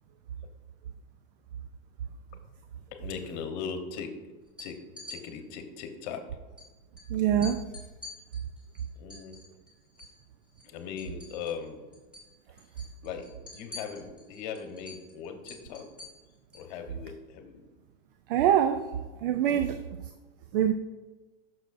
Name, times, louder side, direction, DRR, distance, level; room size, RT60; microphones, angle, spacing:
voice 1, 2.9-6.4 9.0-9.4 10.6-11.9 13.0-16.0 16.5-17.7 19.5-19.8, left 6 dB, 45° left, 6 dB, 1.1 m, -39 dB
sound 1, 4.5-5.2 6.6-6.7 7.0-7.1 7.4-10.2 10.5-11.7 11.9-12.3 12.6-16.7, left 3 dB, 5° right, 2.5 m, -46 dB
voice 2, 7.1-7.6 18.3-18.9 19.2-19.8 20.5-20.7, right 10 dB, 60° right, 9 dB, 0.5 m, -24 dB
11.0 x 6.4 x 2.6 m, 1.2 s
supercardioid pair, 165°, 30 cm